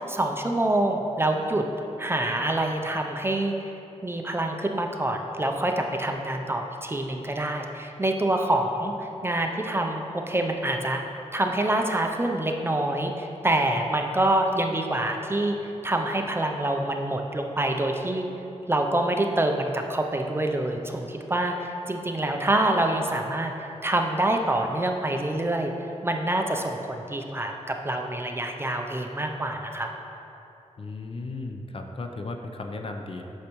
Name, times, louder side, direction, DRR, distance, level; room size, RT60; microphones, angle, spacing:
voice 1, 0.1-1.6 2.0-3.5 4.0-11.0 11.3-15.5 15.8-18.3 18.7-23.5 23.8-25.7 26.0-29.9, right 1 dB, 20° right, 3 dB, 0.5 m, -26 dB
voice 2, 30.8-33.2, left 3 dB, 50° left, 4 dB, 0.5 m, -35 dB
8.5 x 6.6 x 3.0 m, 2.9 s
wide cardioid pair, 120°, 12 cm